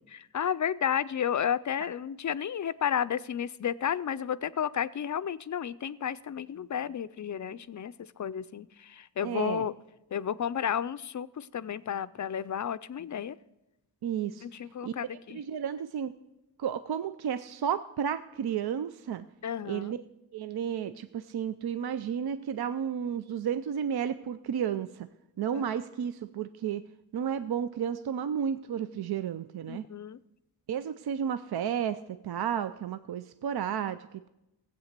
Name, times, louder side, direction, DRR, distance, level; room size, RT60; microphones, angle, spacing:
voice 1, 0.1-9.7 10.1-13.4 14.4-15.4 19.4-19.9 25.5-25.6 29.7-30.2, left 8 dB, 45° left, 15 dB, 0.4 m, -32 dB
voice 2, 9.2-9.7 14.0-14.4 14.8-14.9 15.3-16.1 16.6-19.2 19.6-20.0 20.3-25.1 25.4-26.8 27.1-29.8 30.7-32.0 32.2-34.0, right 8 dB, 65° right, 11 dB, 0.5 m, -32 dB
15.5 x 8.1 x 6.6 m, 0.94 s
wide cardioid pair, 90°, 41 cm